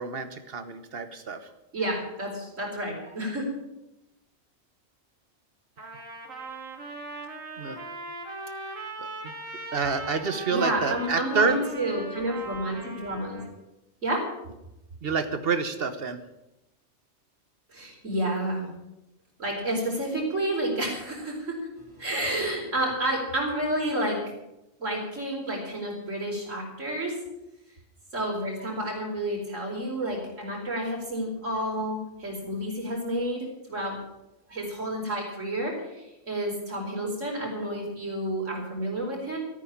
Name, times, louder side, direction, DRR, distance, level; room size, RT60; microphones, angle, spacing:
voice 1, 0.0-1.4 7.6-7.8 9.0-9.3 9.7-11.6 15.0-16.2, right 5 dB, 50° right, 10 dB, 1.4 m, -28 dB
voice 2, 1.7-3.5 7.6-7.8 10.0-10.1 10.5-13.4 14.0-14.3 17.7-18.7 19.4-24.2 24.8-27.1 28.1-34.0 34.5-39.4, right 1 dB, 70° right, -2 dB, 5.1 m, -30 dB
Trumpet, 5.8-13.5, right 2 dB, 90° right, 2.8 m, -39 dB
14.0 x 9.2 x 8.7 m, 0.92 s
omnidirectional pair, 1.3 m